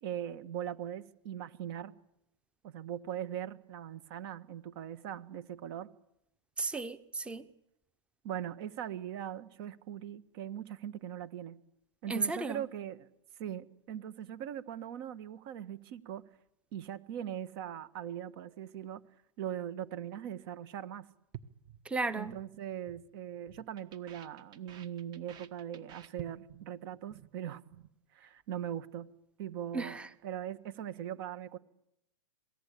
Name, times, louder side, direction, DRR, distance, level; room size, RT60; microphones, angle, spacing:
voice 1, 0.0-1.9 2.6-5.9 8.2-11.6 12.0-13.1 13.4-16.2 16.7-19.0 19.4-21.1 22.1-27.6 28.1-29.1 29.4-31.6, right 10 dB, 45° right, 12 dB, 1.7 m, -40 dB
voice 2, 6.6-7.5 12.1-12.6 21.8-22.4 29.7-30.1, right 3 dB, 5° right, 14 dB, 1.0 m, -34 dB
sound 1, 21.3-22.5 22.7-23.1 23.3-26.7 27.0-27.3 27.6-27.9, right 11 dB, 25° right, 1.4 m, -51 dB
26.0 x 18.5 x 8.6 m, 0.83 s
hypercardioid pair, 140°, 16 cm